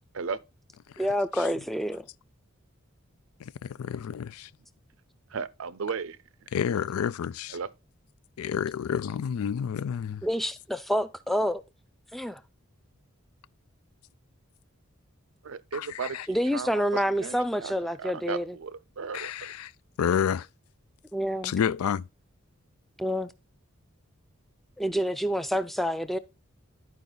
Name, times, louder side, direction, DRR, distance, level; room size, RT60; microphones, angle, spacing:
voice 1, 1.0-2.0 10.2-11.6 12.1-12.4 16.3-18.6 21.1-21.5 23.0-23.3 24.8-26.2, equal, ahead, 0.4 m, -28 dB
voice 2, 3.4-4.5 6.5-7.6 8.4-10.2 15.7-16.3 19.1-19.7 20.0-20.5 21.4-22.0, left 8 dB, 85° left, 0.4 m, -29 dB
voice 3, 5.3-6.2 7.5-7.7 15.4-16.2 16.5-16.7 17.2-17.3 17.6-17.7 18.0-19.3, right 5 dB, 70° right, 0.5 m, -34 dB
10.5 x 4.7 x 3.8 m
head